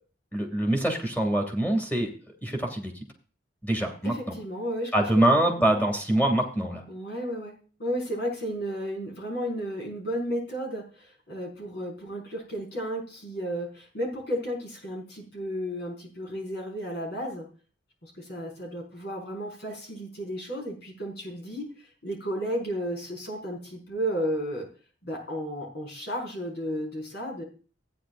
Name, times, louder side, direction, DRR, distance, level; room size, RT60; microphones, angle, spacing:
voice 1, 0.3-2.1 2.4-2.9 3.6-4.3 4.9-6.8, right 1 dB, 10° left, 3 dB, 2.5 m, -24 dB
voice 2, 4.0-4.9 5.3-5.7 6.9-7.5 7.8-17.5 18.0-24.7 25.0-27.4, equal, 60° left, 0 dB, 5.5 m, -33 dB
16.0 x 9.7 x 2.6 m, 0.38 s
head